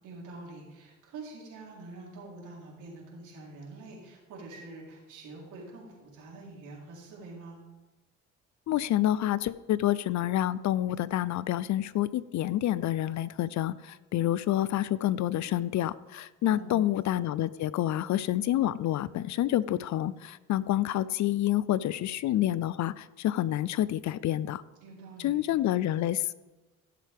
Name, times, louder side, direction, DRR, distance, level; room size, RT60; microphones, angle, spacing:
voice 1, 0.0-7.6 16.4-16.8 24.8-25.4, right 3 dB, 90° right, -4 dB, 3.9 m, -46 dB
voice 2, 8.7-24.6 25.2-26.3, left 13 dB, 65° left, 18 dB, 0.5 m, -28 dB
16.0 x 7.5 x 3.6 m, 1.1 s
cardioid pair, 90°, 30 cm